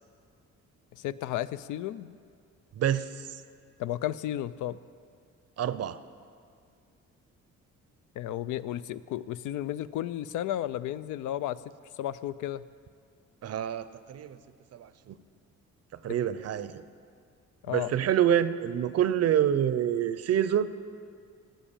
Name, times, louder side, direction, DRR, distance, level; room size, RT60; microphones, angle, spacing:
voice 1, 1.0-2.2 3.8-4.8 8.2-11.6 12.0-12.7 17.6-17.9, left 12 dB, 80° left, 15 dB, 0.5 m, -33 dB
voice 2, 2.7-3.4 5.6-6.0 13.4-14.4 14.7-15.2 16.0-16.8 17.7-20.7, right 10 dB, 55° right, 14 dB, 0.6 m, -27 dB
12.0 x 9.0 x 7.2 m, 2.2 s
cardioid pair, 90°, 30 cm